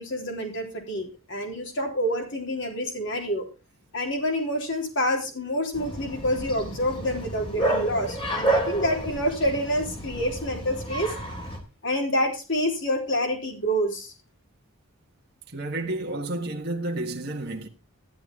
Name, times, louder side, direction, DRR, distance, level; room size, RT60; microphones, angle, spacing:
voice 1, 0.0-3.5 3.9-11.2 11.8-14.1, equal, 55° left, 3.7 m, -27 dB
Bark, 5.7-11.6, right 1 dB, 25° left, 2.4 m, -30 dB
voice 2, 15.5-17.7, right 2 dB, 45° right, 1.5 m, -31 dB
13.0 x 11.5 x 3.7 m
head